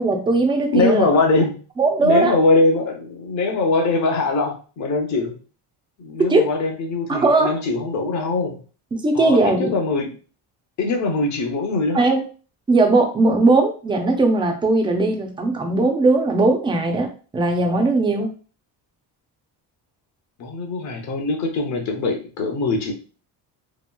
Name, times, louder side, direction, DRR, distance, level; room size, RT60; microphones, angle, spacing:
voice 1, 0.0-1.1 1.8-2.3 6.3-6.5 7.1-7.5 9.0-9.7 11.9-12.2 12.7-17.1 17.3-18.3, right 2 dB, 15° right, 3 dB, 0.3 m, -18 dB
voice 2, 0.7-1.6 2.0-5.4 6.0-8.6 9.1-10.2 10.8-12.2 20.4-22.9, left 3 dB, 40° left, 3 dB, 0.7 m, -22 dB
2.9 x 2.7 x 2.2 m, 0.37 s
cardioid pair, 150°, 42 cm